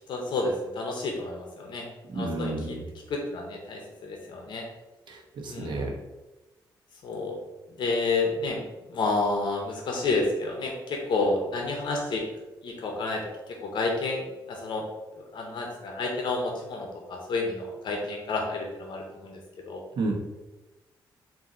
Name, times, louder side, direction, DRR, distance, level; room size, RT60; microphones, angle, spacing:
voice 1, 0.1-1.9 2.1-2.8 3.1-4.6 5.5-5.7 7.0-7.4 7.8-12.2 12.6-14.9 15.1-19.8, left 3 dB, 65° left, 1 dB, 0.7 m, -30 dB
voice 2, 2.1-2.8 5.1-5.9 20.0-20.1, right 2 dB, 65° right, 0 dB, 0.9 m, -31 dB
3.8 x 2.6 x 4.1 m, 1.1 s
cardioid pair, 105°, 8 cm